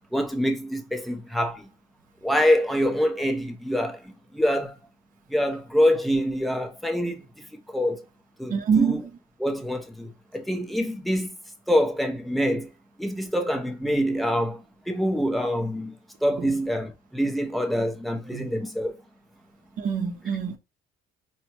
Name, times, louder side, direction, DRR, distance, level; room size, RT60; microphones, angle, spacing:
voice 1, 0.1-1.7 2.2-4.8 5.3-8.0 8.4-9.0 9.4-11.4 11.7-12.7 13.0-19.0, equal, ahead, 0.7 m, -25 dB
voice 2, 8.5-9.0 16.4-16.5 18.3-18.5 19.8-20.6, right 6 dB, 55° right, 0.8 m, -25 dB
4.3 x 2.2 x 2.8 m
cardioid pair, 110°, 17 cm